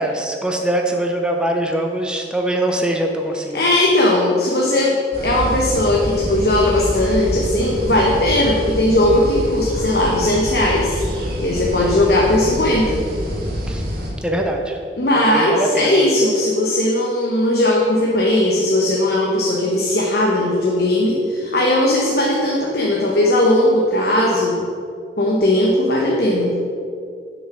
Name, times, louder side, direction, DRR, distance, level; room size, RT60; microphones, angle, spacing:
voice 1, 0.0-3.6 13.7-13.8 14.2-14.8 15.1-16.0, right 1 dB, 5° right, 2 dB, 0.6 m, -22 dB
voice 2, 3.5-4.9 5.2-11.0 11.4-13.0 15.0-24.6 25.2-26.5, left 1 dB, 60° left, -3 dB, 1.0 m, -18 dB
sound 1, 5.1-14.1, equal, 55° right, 1.7 m, -26 dB
6.8 x 6.4 x 6.0 m, 2.3 s
head